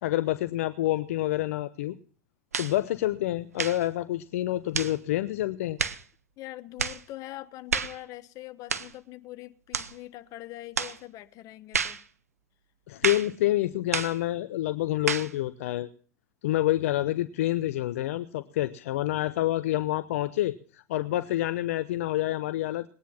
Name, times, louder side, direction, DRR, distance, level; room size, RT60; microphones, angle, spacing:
voice 1, 0.0-1.9 2.6-5.8 12.9-15.9 16.4-22.9, left 15 dB, 70° left, 12 dB, 0.7 m, -28 dB
sound 1, 2.5-2.8 3.5-3.9 4.7-5.0 5.8-6.0 6.8-7.0 7.7-8.0 8.7-8.9 9.7-9.9 10.8-11.0 11.7-12.0 13.0-13.3 13.9-14.2 15.1-15.3, right 6 dB, 90° right, 0.9 m, -30 dB
voice 2, 6.4-12.0, left 16 dB, 45° left, 13 dB, 1.2 m, -43 dB
19.5 x 10.0 x 5.8 m, 0.42 s
hypercardioid pair, 90°, 8 cm